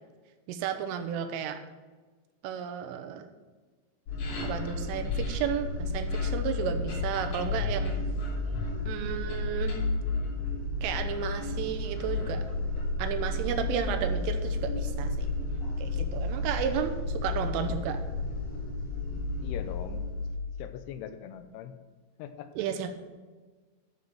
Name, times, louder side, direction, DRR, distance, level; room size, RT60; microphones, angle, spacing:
voice 1, 0.5-1.6 2.4-3.3 4.4-8.0 8.9-9.8 10.8-12.4 13.0-15.3 15.8-18.0 22.6-23.0, right 8 dB, 90° right, 7 dB, 3.3 m, -33 dB
sound 1, 4.1-20.4, left 2 dB, 60° left, 5.6 m, -32 dB
voice 2, 19.4-20.0 20.6-21.7 22.2-22.5, left 9 dB, 85° left, 9 dB, 3.1 m, -41 dB
12.0 x 5.3 x 6.9 m, 1.3 s
omnidirectional pair, 5.6 m